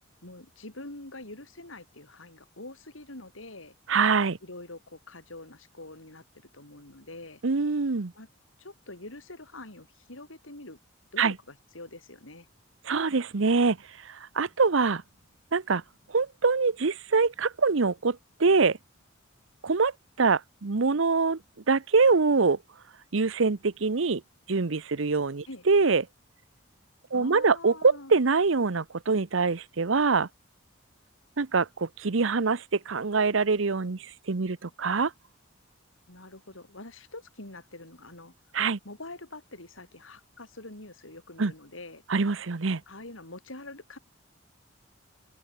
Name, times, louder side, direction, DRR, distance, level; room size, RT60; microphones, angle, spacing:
voice 1, 0.2-3.7 4.4-6.2 6.5-7.4 8.1-8.3 8.6-10.8 11.1-12.5 25.5-25.7 27.1-28.2 36.1-38.3 38.8-42.0 42.9-44.0, left 2 dB, 85° left, 5.4 m, -45 dB
voice 2, 3.9-4.4 7.4-8.1 11.2-11.3 12.8-13.8 14.0-15.0 15.5-15.8 16.1-18.8 19.6-19.9 20.2-21.4 21.7-22.6 23.1-24.2 24.5-26.0 27.1-30.3 31.4-35.1 38.5-38.8 41.4-41.5 42.1-42.8, right 4 dB, 75° right, 0.8 m, -24 dB
head